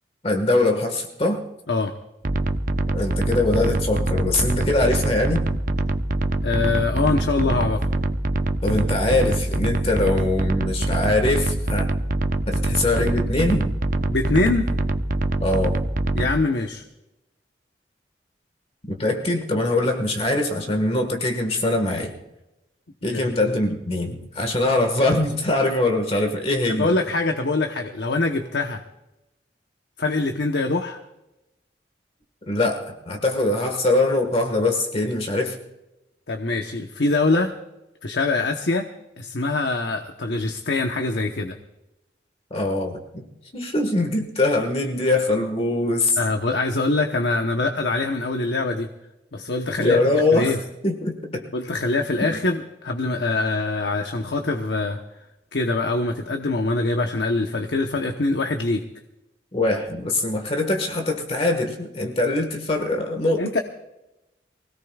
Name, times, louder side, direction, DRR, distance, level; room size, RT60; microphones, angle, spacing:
voice 1, 0.2-1.4 2.9-5.4 8.6-11.9 12.5-13.7 15.4-15.8 18.9-22.1 23.0-26.9 32.5-35.6 42.5-43.2 43.5-46.2 49.8-51.4 59.5-63.4, left 2 dB, 35° left, 4 dB, 1.6 m, -22 dB
sound 1, 2.2-16.3, right 2 dB, 50° right, 0.8 m, -24 dB
voice 2, 6.4-7.8 14.1-14.7 16.1-16.8 23.0-23.5 26.7-28.8 30.0-31.0 36.3-37.5 38.0-38.8 39.2-41.6 46.2-48.9 49.3-50.0 50.3-50.6 51.5-55.0 55.5-58.8 63.4-63.6, left 3 dB, 80° left, 4 dB, 1.0 m, -24 dB
24.0 x 17.0 x 2.4 m, 0.94 s
head